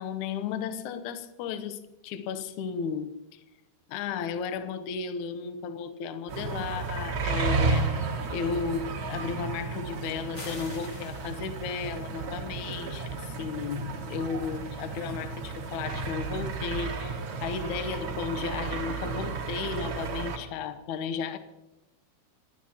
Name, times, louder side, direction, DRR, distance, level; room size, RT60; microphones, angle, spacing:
voice 1, 0.0-3.4 3.9-7.9 8.3-21.4, left 6 dB, 85° left, 1.7 m, -34 dB
sound 1, 6.3-20.4, right 4 dB, 60° right, 1.3 m, -33 dB
sound 2, 10.3-11.9, left 1 dB, 45° left, 0.9 m, -44 dB
29.0 x 12.5 x 2.9 m
omnidirectional pair, 4.6 m